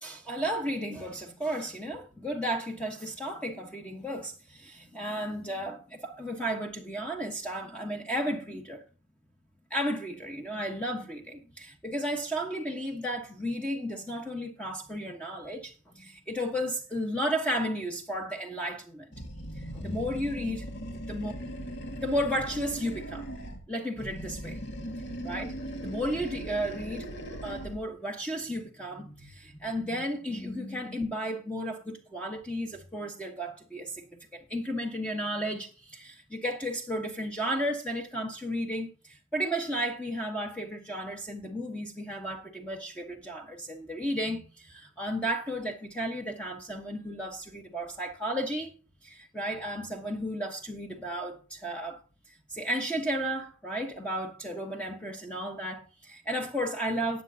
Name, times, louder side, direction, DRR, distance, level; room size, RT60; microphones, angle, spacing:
voice 1, 0.0-8.8 9.7-19.1 19.6-20.6 21.1-21.3 22.0-23.3 23.7-24.6 25.2-48.8 49.0-52.0 52.5-57.2, equal, 5° left, 1.2 m, -33 dB
Animal, 19.1-23.6 23.9-27.9, right 1 dB, 55° left, 2.0 m, -39 dB
18.5 x 7.7 x 2.8 m
head